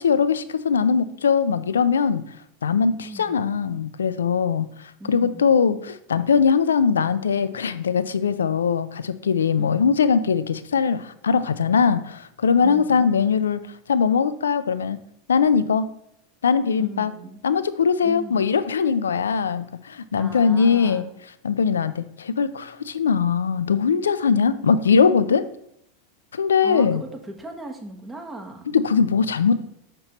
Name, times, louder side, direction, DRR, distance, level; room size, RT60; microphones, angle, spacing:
voice 1, 0.0-2.2 2.6-13.6 13.9-15.0 15.3-15.9 16.4-17.1 17.4-21.0 21.4-25.5 26.3-27.0 28.7-29.6, left 6 dB, 85° left, 14 dB, 0.4 m, -21 dB
voice 2, 3.0-3.4 5.0-5.5 9.6-9.7 12.6-13.1 16.8-17.4 18.0-18.5 20.2-21.1 26.6-28.6, right 2 dB, 15° right, 2 dB, 1.2 m, -38 dB
6.4 x 5.9 x 3.0 m, 0.74 s
hypercardioid pair, 95°, 0 cm